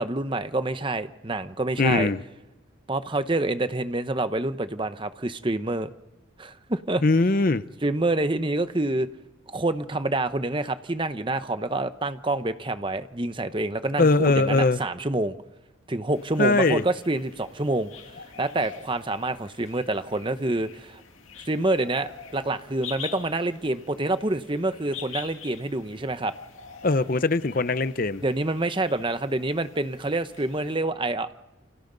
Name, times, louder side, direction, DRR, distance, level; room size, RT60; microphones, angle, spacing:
voice 1, 0.0-2.1 2.9-5.9 6.4-7.0 7.8-9.1 9.5-15.3 15.9-17.9 18.4-21.0 21.5-26.3 28.2-31.3, right 2 dB, 25° right, 0.8 m, -27 dB
voice 2, 1.8-2.2 7.0-7.6 14.0-14.8 16.4-16.8 26.8-28.2, left 3 dB, 40° left, 0.7 m, -21 dB
sound 1, 16.1-30.8, left 7 dB, 80° left, 2.3 m, -45 dB
29.0 x 27.0 x 4.0 m
head